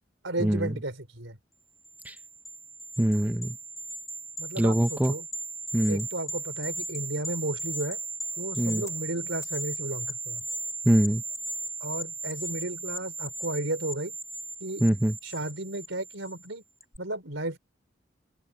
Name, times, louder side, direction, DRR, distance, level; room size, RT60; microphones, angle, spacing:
voice 1, 0.2-1.4 4.4-5.3 5.9-8.0 8.4-10.4 11.8-14.2 14.6-14.9 15.2-16.6 17.0-17.6, right 1 dB, 75° right, 5.3 m, -34 dB
sound 1, 1.8-16.5 16.8-17.0, right 2 dB, 15° left, 4.1 m, -37 dB
voice 2, 3.0-3.6 4.6-5.1 5.7-6.1 8.6-8.8 10.9-11.2 14.8-15.2, right 1 dB, 10° right, 0.7 m, -23 dB
open air
head